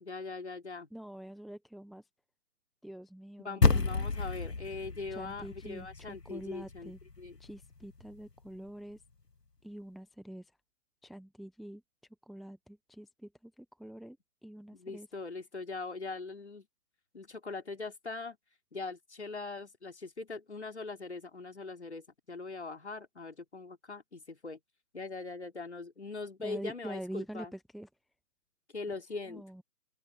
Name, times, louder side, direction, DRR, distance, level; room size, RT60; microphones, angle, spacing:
voice 1, 0.0-0.9 3.4-6.9 7.2-7.4 14.7-16.7 17.1-18.4 18.7-24.6 24.9-27.5 28.7-29.4, left 3 dB, 45° left, 4.0 m, -41 dB
voice 2, 0.9-2.0 2.8-3.8 5.1-7.0 7.4-9.0 9.6-10.5 11.0-11.8 12.3-14.2 14.4-15.1 26.4-27.9 29.3-29.6, right 1 dB, ahead, 1.0 m, -45 dB
sound 1, 3.6-8.1, left 3 dB, 80° left, 2.5 m, -31 dB
open air
figure-of-eight pair, 175°, 48 cm